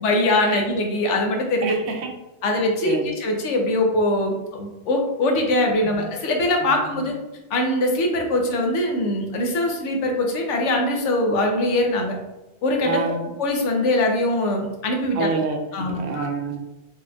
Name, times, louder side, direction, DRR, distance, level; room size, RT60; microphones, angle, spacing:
voice 1, 0.0-1.7 2.4-7.2 7.5-12.2 12.6-15.3 15.7-16.2, left 1 dB, 85° left, 2 dB, 1.1 m, -22 dB
voice 2, 1.6-2.1 2.8-3.0 6.6-6.8 12.8-13.3 15.1-16.6, right 4 dB, 70° right, 2 dB, 0.9 m, -27 dB
4.1 x 3.2 x 2.3 m, 0.97 s
omnidirectional pair, 1.2 m